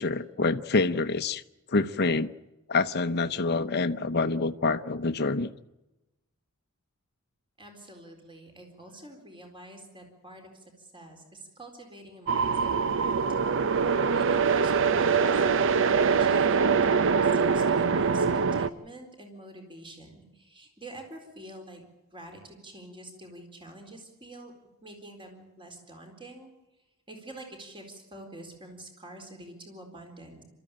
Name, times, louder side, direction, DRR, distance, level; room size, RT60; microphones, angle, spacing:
voice 1, 0.0-1.4 1.7-2.3 2.7-5.5, left 3 dB, 50° left, 10 dB, 0.8 m, -26 dB
voice 2, 7.6-15.4 16.0-21.8 22.1-24.5 24.8-26.5 27.1-30.4, right 1 dB, 25° right, 3 dB, 4.2 m, -47 dB
sound 1, 12.3-18.7, right 5 dB, 60° right, 0.7 m, -23 dB
28.0 x 14.0 x 8.8 m, 0.99 s
head